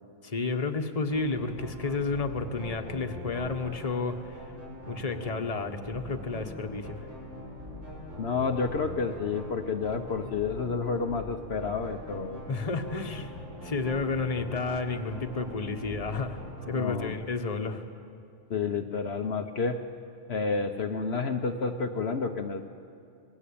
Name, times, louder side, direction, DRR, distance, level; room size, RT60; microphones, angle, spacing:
voice 1, 0.2-4.2 4.9-7.1 12.5-16.4 16.7-17.8, left 3 dB, 30° left, 6 dB, 1.3 m, -31 dB
sound 1, 1.1-17.1, equal, 90° right, 7.0 m, -43 dB
voice 2, 8.2-12.4 16.7-17.2 18.5-19.8 20.3-22.6, left 4 dB, 60° left, 4 dB, 1.2 m, -30 dB
27.0 x 20.5 x 8.6 m, 2.4 s
omnidirectional pair, 1.2 m